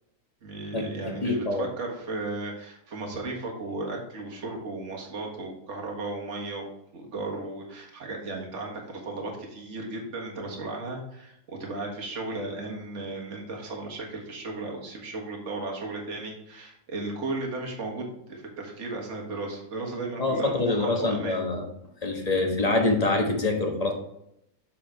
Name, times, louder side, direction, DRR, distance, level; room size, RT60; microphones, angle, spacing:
voice 1, 0.4-21.4, right 2 dB, 55° right, 0 dB, 1.8 m, -35 dB
voice 2, 1.2-1.6 20.2-21.6 22.0-23.9, left 2 dB, 30° left, 1 dB, 1.2 m, -25 dB
7.3 x 5.1 x 4.4 m, 0.78 s
omnidirectional pair, 1.6 m